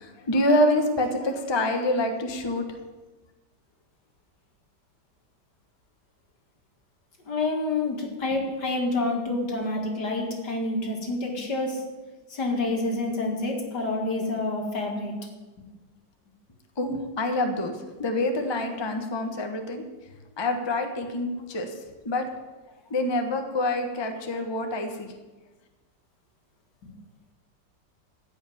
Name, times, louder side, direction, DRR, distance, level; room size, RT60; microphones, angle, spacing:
voice 1, 0.0-2.7 16.8-17.7 18.0-19.8 20.4-21.7 22.0-22.3 22.9-25.1, left 1 dB, 20° left, 5 dB, 0.9 m, -26 dB
voice 2, 7.3-11.9 12.3-15.1 26.8-26.9, left 2 dB, 65° left, 2 dB, 2.5 m, -28 dB
14.5 x 5.6 x 9.1 m, 1.2 s
omnidirectional pair, 2.0 m